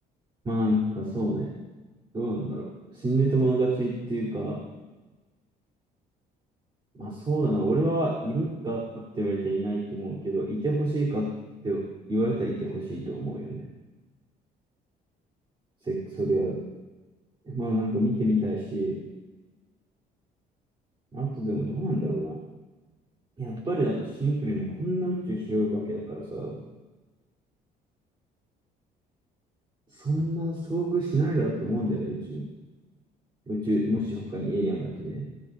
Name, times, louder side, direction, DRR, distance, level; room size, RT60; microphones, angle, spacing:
voice 1, 0.4-1.5 2.1-4.7 6.9-13.7 15.8-16.6 17.5-19.1 21.1-22.4 23.4-26.6 29.9-32.5 33.5-35.3, right 1 dB, 30° right, -5 dB, 3.7 m, -28 dB
22.5 x 18.5 x 2.8 m, 1.2 s
cardioid pair, 110°, 17 cm